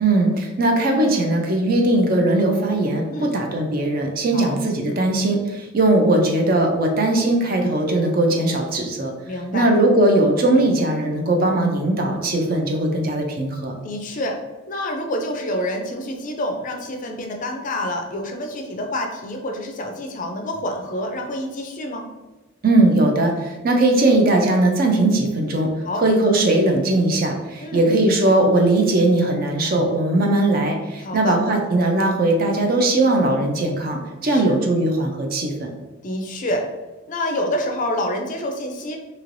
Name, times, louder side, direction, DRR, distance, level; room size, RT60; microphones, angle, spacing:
voice 1, 0.0-9.1 9.5-13.7 22.6-25.7 26.0-35.7, right 2 dB, 45° right, 3 dB, 0.4 m, -19 dB
voice 2, 9.3-9.7 13.8-14.4 14.7-22.1 25.9-26.0 27.6-27.9 31.0-31.4 34.2-34.6 36.0-36.6 37.1-39.0, left 1 dB, 40° left, 3 dB, 0.4 m, -27 dB
3.1 x 2.8 x 2.5 m, 1.2 s
head